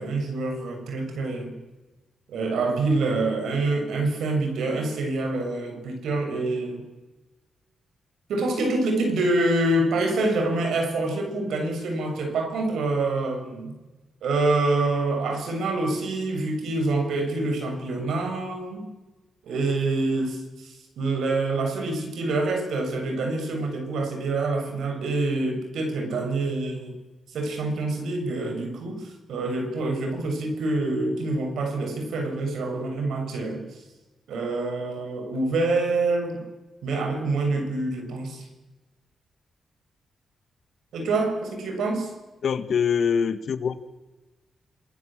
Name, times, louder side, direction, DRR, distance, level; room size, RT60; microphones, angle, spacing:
voice 1, 0.0-1.6 2.3-6.8 8.3-13.7 14.2-18.9 19.4-26.9 27.3-33.7 34.3-36.5 36.8-38.4 40.9-42.1, right 2 dB, 90° right, 5 dB, 6.8 m, -26 dB
voice 2, 42.4-43.7, left 7 dB, 65° left, 11 dB, 1.7 m, -24 dB
27.5 x 20.0 x 7.6 m, 1.1 s
cardioid pair, 110°, 0 cm